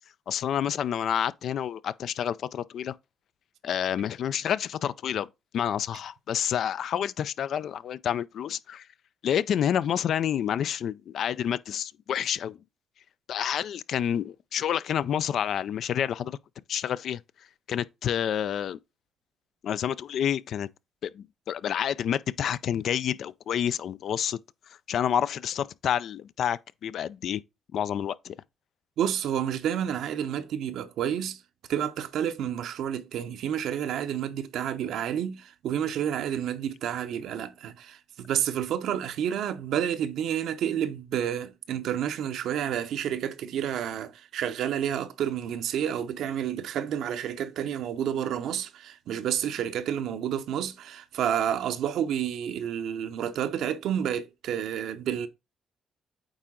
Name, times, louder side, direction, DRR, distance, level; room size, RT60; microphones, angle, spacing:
voice 1, 0.3-3.0 3.6-5.3 5.5-8.9 9.2-12.6 13.3-16.4 16.7-17.2 17.7-18.8 19.6-20.7 21.0-24.4 24.9-27.4 27.7-28.4, left 9 dB, 70° left, 0.3 m, -29 dB
voice 2, 29.0-31.4 31.7-55.3, right 9 dB, 80° right, 0.7 m, -30 dB
8.8 x 3.7 x 3.7 m
cardioid pair, 90°, 0 cm